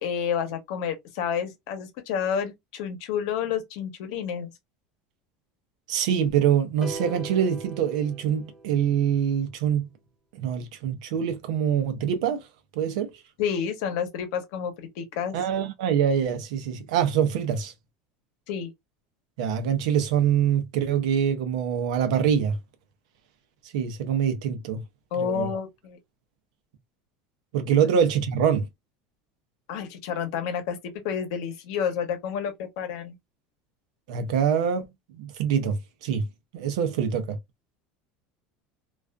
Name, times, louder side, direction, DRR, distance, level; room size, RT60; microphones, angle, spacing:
voice 1, 0.0-4.5 13.4-15.4 18.5-18.7 25.1-26.0 29.7-30.8 31.0-33.2, left 7 dB, 60° left, 0.8 m, -29 dB
voice 2, 5.9-9.9 10.3-12.5 12.7-13.1 15.3-17.7 19.4-22.6 23.7-24.8 25.2-25.5 27.5-28.7 34.1-34.9 35.1-36.2 36.5-37.4, right 8 dB, 90° right, 0.6 m, -24 dB
sound 1, 6.8-9.1, right 3 dB, 5° right, 0.4 m, -39 dB
2.4 x 2.4 x 2.2 m
cardioid pair, 180°, 4 cm